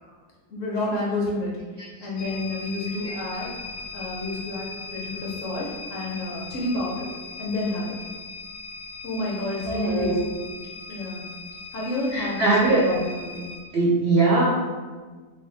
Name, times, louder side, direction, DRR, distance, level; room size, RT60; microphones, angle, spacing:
voice 1, 0.5-1.5 2.0-3.5 3.9-7.1 7.4-7.9 9.0-10.5 10.9-11.3 11.7-13.5, left 2 dB, 55° left, -4 dB, 1.2 m, -29 dB
sound 1, 2.2-13.6, left 3 dB, 75° left, 1.3 m, -39 dB
voice 2, 9.7-10.2 12.1-12.8 13.7-14.5, right 3 dB, 65° right, -5 dB, 0.6 m, -21 dB
3.5 x 3.2 x 3.9 m, 1.4 s
omnidirectional pair, 1.7 m